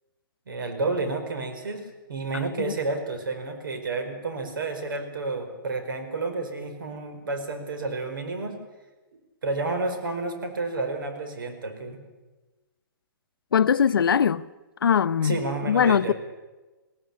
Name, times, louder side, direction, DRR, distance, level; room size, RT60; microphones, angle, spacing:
voice 1, 0.5-8.6 9.4-12.0 15.2-16.1, right 3 dB, 70° right, 5.0 m, -30 dB
voice 2, 13.5-14.4 14.8-16.1, left 7 dB, 80° left, 0.8 m, -21 dB
21.5 x 17.0 x 8.5 m
hypercardioid pair, 170°, 12 cm